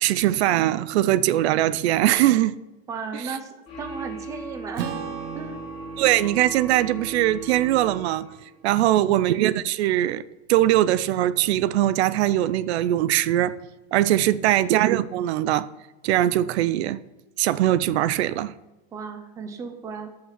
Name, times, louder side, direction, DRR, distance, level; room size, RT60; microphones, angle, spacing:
voice 1, 0.0-2.6 3.1-3.4 6.0-8.3 8.6-10.2 10.5-13.6 13.9-15.7 16.0-17.0 17.4-18.5, right 13 dB, 75° right, 0.6 m, -21 dB
voice 2, 2.9-4.9 5.3-5.6 14.4-14.5 18.9-20.1, right 5 dB, 10° right, 0.5 m, -35 dB
sound 1, 3.7-8.5, right 2 dB, 15° left, 2.9 m, -38 dB
Acoustic guitar / Strum, 4.8-9.5, right 9 dB, 60° right, 1.1 m, -39 dB
12.0 x 5.8 x 5.9 m
supercardioid pair, 175°, 33 cm